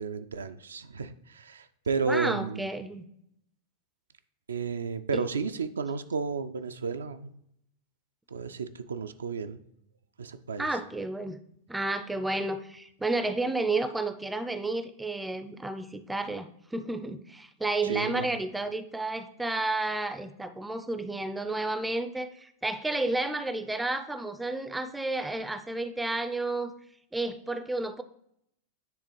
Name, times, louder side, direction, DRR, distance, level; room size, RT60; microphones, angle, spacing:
voice 1, 0.0-2.7 4.5-7.3 8.3-9.6 10.2-10.7 17.8-18.3, right 5 dB, 70° right, 9 dB, 0.3 m, -32 dB
voice 2, 2.0-3.0 5.1-5.2 10.6-11.4 11.7-26.7 27.1-28.0, right 2 dB, 5° right, 10 dB, 0.4 m, -31 dB
9.6 x 3.4 x 3.2 m, 0.74 s
figure-of-eight pair, 90°, 0 cm